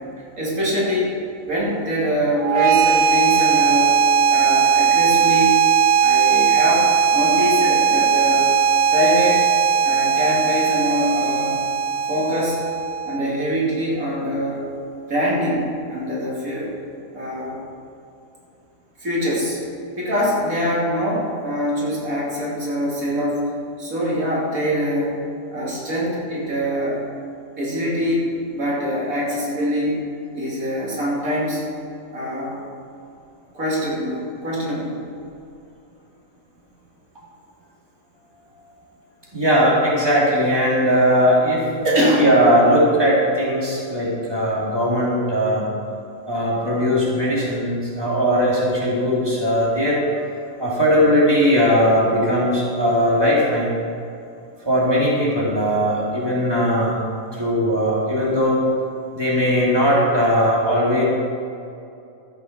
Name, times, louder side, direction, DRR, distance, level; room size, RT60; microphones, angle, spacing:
voice 1, 0.4-1.1 1.4-4.0 4.3-5.6 6.0-8.5 8.9-9.4 9.8-11.6 12.1-12.6 13.1-14.6 15.1-16.7 17.1-17.6 19.0-19.6 20.0-23.4 23.8-25.2 25.5-27.0 27.6-30.0 30.3-31.6 32.1-32.6 33.5-35.0 38.5-38.8 41.8-42.3, equal, 90° right, -6 dB, 3.2 m, -23 dB
sound 1, 2.4-13.4, right 6 dB, 60° right, 0.7 m, -18 dB
voice 2, 39.3-45.7 46.3-50.0 50.6-53.8 54.6-57.0 57.3-58.6 59.1-61.0, equal, 15° right, -6 dB, 3.0 m, -19 dB
13.0 x 8.1 x 6.0 m, 2.6 s
omnidirectional pair, 1.4 m